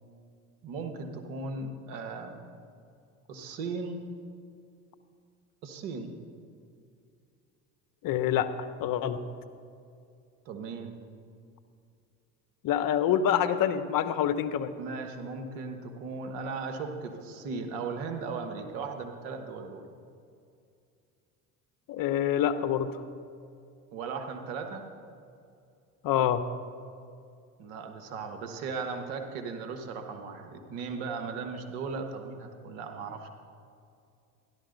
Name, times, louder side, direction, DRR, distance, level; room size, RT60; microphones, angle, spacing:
voice 1, 0.6-2.4 3.3-4.1 5.6-6.1 10.4-11.0 14.8-19.8 23.9-24.9 27.6-33.3, right 4 dB, 70° right, 5 dB, 1.4 m, -37 dB
voice 2, 8.0-8.5 8.8-9.2 12.6-14.7 21.9-22.9 26.0-26.4, left 10 dB, 50° left, 11 dB, 0.8 m, -26 dB
12.5 x 11.5 x 3.9 m, 2.4 s
hypercardioid pair, 70°, 43 cm